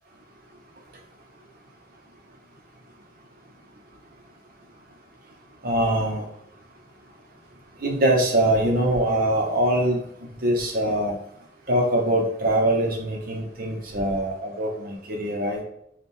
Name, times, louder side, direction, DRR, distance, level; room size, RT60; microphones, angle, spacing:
voice 1, 5.6-6.2 7.8-10.0 10.4-11.2 11.7-15.6, right 1 dB, 50° right, 1 dB, 0.9 m, -23 dB
3.5 x 2.4 x 4.3 m, 0.73 s
head